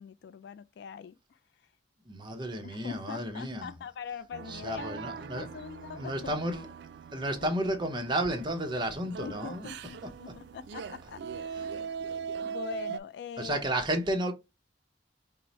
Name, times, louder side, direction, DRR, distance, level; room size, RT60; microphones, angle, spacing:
voice 1, 0.0-1.7 2.6-6.3 7.4-7.5 9.2-12.0 12.4-13.7, left 7 dB, 65° left, 0.3 m, -43 dB
voice 2, 2.1-3.7 4.5-5.5 5.9-6.7 7.1-9.7 12.1-12.2 13.4-14.3, right 1 dB, 25° right, 0.7 m, -32 dB
sound 1, 4.3-13.0, right 6 dB, 70° right, 0.3 m, -41 dB
4.6 x 2.0 x 4.0 m
head